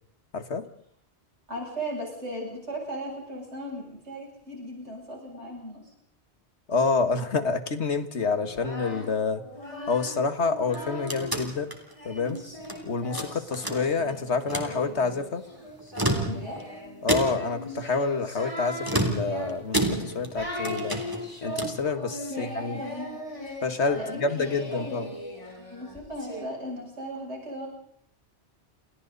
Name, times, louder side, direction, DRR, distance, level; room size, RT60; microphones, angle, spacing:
voice 1, 0.3-0.7 6.7-9.4 9.9-11.7 12.0-12.4 12.8-15.4 17.0-21.0 21.4-22.8 23.6-25.1, left 4 dB, 80° left, 9 dB, 2.0 m, -28 dB
voice 2, 1.5-5.8 16.3-16.6 22.3-23.2 24.0-25.1 25.6-27.7, right 1 dB, 85° right, -2 dB, 8.2 m, -37 dB
Singing, 8.4-11.4 12.0-26.4, equal, 30° left, 5.8 m, -39 dB
sound 1, 10.6-12.8 13.1-14.1 14.4-14.8 15.8-16.6 17.1-17.6 18.8-20.4 20.6-21.9, right 1 dB, 20° right, 3.5 m, -30 dB
30.0 x 27.0 x 4.1 m, 0.66 s
omnidirectional pair, 1.1 m